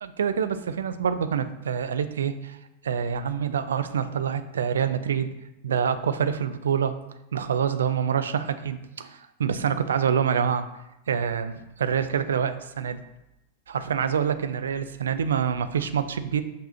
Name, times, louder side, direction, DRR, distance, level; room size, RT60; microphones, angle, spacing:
voice 1, 0.0-2.6 2.8-5.3 5.6-7.0 7.3-10.7 11.1-13.0 13.7-16.4, right 7 dB, 65° right, 11 dB, 0.5 m, -26 dB
8.3 x 6.1 x 2.7 m, 0.93 s
figure-of-eight pair, 90°, 0 cm